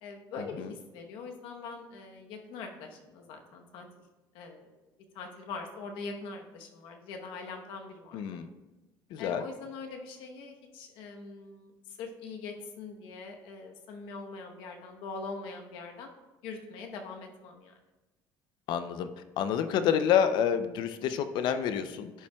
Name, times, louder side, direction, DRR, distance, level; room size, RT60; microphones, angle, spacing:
voice 1, 0.0-3.9 4.3-4.7 5.1-8.3 9.2-16.1 16.4-17.7, left 4 dB, 80° left, 3 dB, 1.0 m, -42 dB
voice 2, 8.1-8.5 9.1-9.4 18.7-19.1 19.4-22.1, left 8 dB, 65° left, 10 dB, 0.5 m, -28 dB
10.5 x 5.8 x 2.3 m, 1.1 s
cardioid pair, 150°, 8 cm